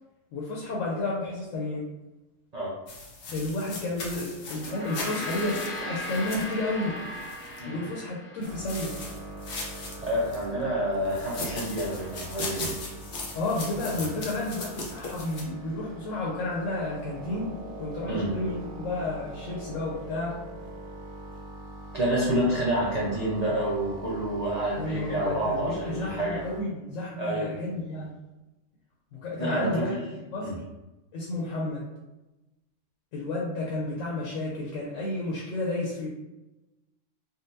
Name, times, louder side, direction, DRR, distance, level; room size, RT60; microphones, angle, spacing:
voice 1, 0.3-1.9 3.3-7.0 7.6-9.0 13.3-20.4 24.8-28.1 29.1-30.0 30.3-30.5 31.1-31.9 33.1-36.1, left 2 dB, 80° left, -4 dB, 1.1 m, -31 dB
sound 1, 2.9-7.6 8.4-10.5 11.1-15.4, left 3 dB, 55° left, 0.7 m, -39 dB
Gong, 4.5-9.1, left 1 dB, 30° left, 0.9 m, -37 dB
sound 2, 8.4-26.6, right 1 dB, 70° right, 1.1 m, -43 dB
voice 2, 9.7-12.8 14.0-14.1 18.1-18.3 21.9-26.4 27.2-27.5 29.4-30.0 30.4-30.6, right 1 dB, 50° right, -6 dB, 0.5 m, -28 dB
3.8 x 2.2 x 2.6 m, 1.0 s
omnidirectional pair, 1.4 m